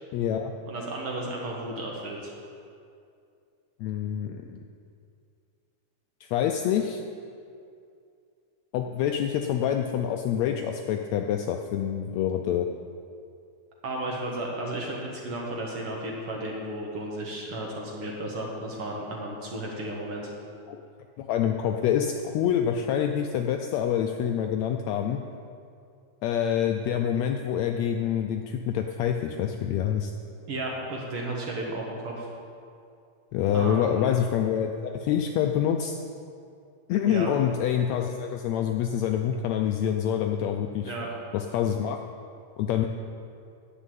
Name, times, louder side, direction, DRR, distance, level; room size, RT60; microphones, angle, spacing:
voice 1, 0.1-0.5 3.8-4.6 6.2-7.0 8.7-12.7 20.7-20.8 21.2-25.2 26.2-30.1 33.3-36.0 36.9-40.9 41.3-42.0 42.6-42.9, left 9 dB, 80° left, 4 dB, 1.6 m, -26 dB
voice 2, 0.7-2.3 13.8-20.3 30.5-32.3 33.5-34.2 37.1-37.3 40.8-41.1, right 1 dB, 55° right, -1 dB, 1.8 m, -33 dB
10.0 x 8.2 x 7.6 m, 2.4 s
omnidirectional pair, 3.6 m